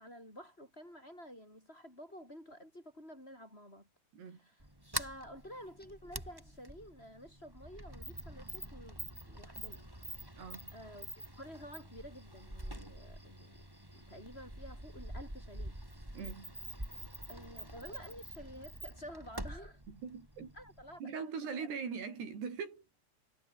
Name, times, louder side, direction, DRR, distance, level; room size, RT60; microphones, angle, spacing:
voice 1, 0.0-3.9 4.3-4.7 5.0-9.9 10.7-11.1 11.4-13.7 13.9-15.8 17.3-19.8 20.5-21.7, equal, 15° left, 7.7 m, -51 dB
Sliding door, 4.6-21.0, right 1 dB, 5° right, 4.9 m, -46 dB
voice 2, 10.4-10.7 16.1-16.6 20.0-20.5 21.0-22.9, right 6 dB, 75° right, 6.9 m, -41 dB
omnidirectional pair, 4.7 m